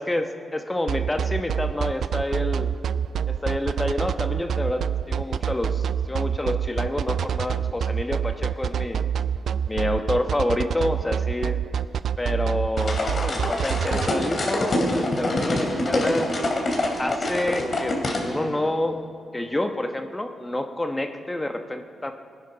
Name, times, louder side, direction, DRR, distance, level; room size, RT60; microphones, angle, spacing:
voice 1, 0.0-2.7 3.3-9.0 9.7-11.6 12.2-16.3 17.0-19.0 19.3-22.1, left 1 dB, 15° left, 6 dB, 1.0 m, -28 dB
sound 1, 0.9-14.1, right 8 dB, 70° right, 0.4 m, -26 dB
sound 2, 12.8-18.2, left 1 dB, 45° left, 3.0 m, -25 dB
19.5 x 10.5 x 5.7 m, 2.2 s
cardioid pair, 80°, 0 cm